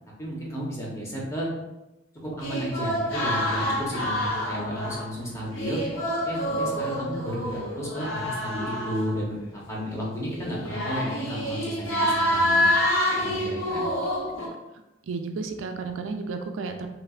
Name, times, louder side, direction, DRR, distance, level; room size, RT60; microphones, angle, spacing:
voice 1, 0.2-1.5 2.2-5.8 6.2-12.8 13.2-13.9, equal, 15° left, -5 dB, 0.9 m, -33 dB
sound 1, 2.4-5.2 5.5-9.5 10.3-14.5, left 1 dB, 85° left, 0.8 m, -27 dB
voice 2, 15.1-16.9, right 4 dB, 85° right, 5 dB, 0.4 m, -32 dB
5.4 x 2.0 x 2.4 m, 0.99 s
head